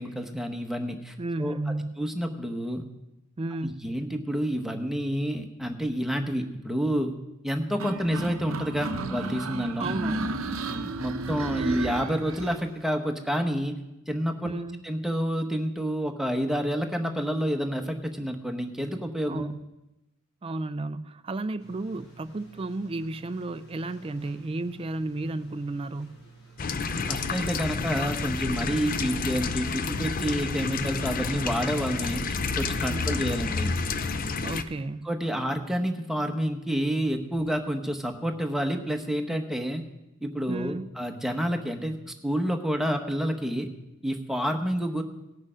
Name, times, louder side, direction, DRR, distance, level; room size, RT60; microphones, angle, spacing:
voice 1, 0.0-1.5 2.0-2.8 3.6-7.1 7.4-9.9 10.7-13.8 14.1-14.5 14.8-19.5 27.1-33.8 35.0-39.8 40.2-43.7 44.0-45.0, equal, ahead, 0.9 m, -29 dB
voice 2, 1.2-2.0 3.4-3.9 9.8-10.4 14.4-14.8 19.3-19.7 20.4-26.2 32.9-33.2 34.4-35.1 40.5-40.9, right 2 dB, 25° right, 0.4 m, -33 dB
sound 1, 7.8-12.6, right 3 dB, 70° right, 0.7 m, -32 dB
sound 2, 21.6-34.6, right 3 dB, 85° left, 3.6 m, -52 dB
sound 3, 26.6-34.6, left 4 dB, 40° left, 0.6 m, -30 dB
18.5 x 6.5 x 5.0 m
head